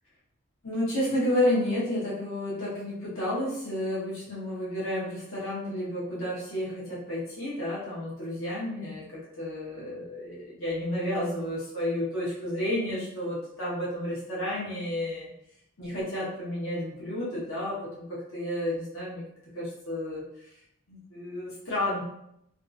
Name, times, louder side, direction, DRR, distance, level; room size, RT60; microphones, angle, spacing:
voice 1, 0.6-15.3 15.8-19.2 19.5-20.5 20.9-22.0, left 1 dB, 75° left, -8 dB, 0.9 m, -31 dB
2.6 x 2.4 x 2.5 m, 0.76 s
head